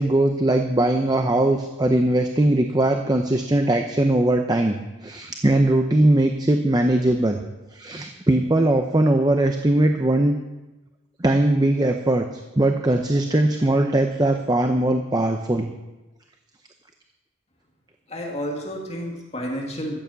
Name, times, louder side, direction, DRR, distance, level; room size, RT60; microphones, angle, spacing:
voice 1, 0.0-7.4 7.7-10.3 11.2-12.2 12.6-15.7, right 1 dB, 20° right, 5 dB, 0.6 m, -20 dB
voice 2, 18.1-20.0, equal, 30° left, 0 dB, 1.9 m, -30 dB
14.0 x 8.3 x 7.0 m, 1.1 s
head